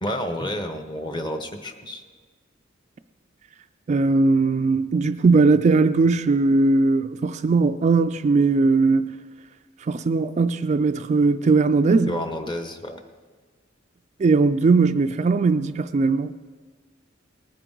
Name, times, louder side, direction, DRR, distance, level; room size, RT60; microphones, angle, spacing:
voice 1, 0.0-2.0 12.1-13.0, left 1 dB, 25° left, 1.0 m, -30 dB
voice 2, 3.9-9.1 9.9-12.2 14.2-16.3, right 3 dB, 35° right, 0.3 m, -19 dB
19.5 x 9.5 x 3.9 m
head